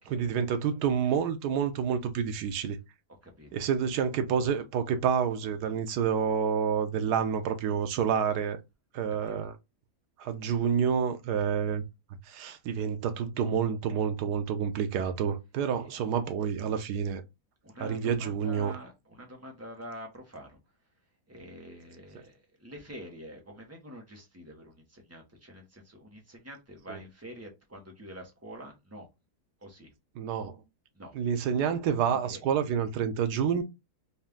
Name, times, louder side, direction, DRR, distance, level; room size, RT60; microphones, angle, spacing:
voice 1, 0.1-2.8 3.5-8.6 8.9-9.5 10.2-11.8 12.3-17.2 17.8-18.7 26.9-27.0 30.2-30.6 31.1-33.6, right 7 dB, 90° right, 1.2 m, -28 dB
voice 2, 3.2-3.6 9.2-9.5 15.8-15.9 17.6-20.6 21.3-29.1 29.6-29.9 30.9-31.1 32.1-32.4, equal, 10° right, 0.8 m, -46 dB
4.2 x 2.4 x 3.4 m
omnidirectional pair, 1.7 m